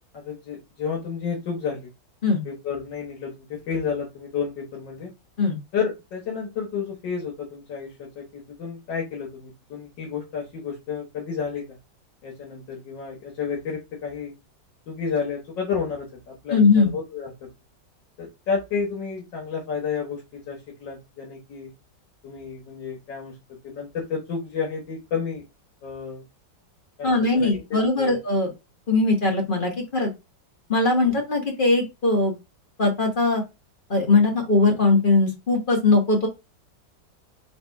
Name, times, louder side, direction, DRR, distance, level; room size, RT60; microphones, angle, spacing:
voice 1, 0.1-1.9 2.4-5.1 5.7-11.8 12.2-14.3 14.9-17.5 18.2-21.7 22.2-25.4 25.8-26.2 27.0-28.2 31.1-31.2, left 6 dB, 80° left, -1 dB, 1.8 m, -31 dB
voice 2, 16.5-16.9 27.0-28.5 28.9-30.1 30.7-32.4 32.8-33.4 33.9-36.3, left 3 dB, 35° left, 2 dB, 1.0 m, -20 dB
4.2 x 2.5 x 4.5 m, 0.24 s
omnidirectional pair, 1.9 m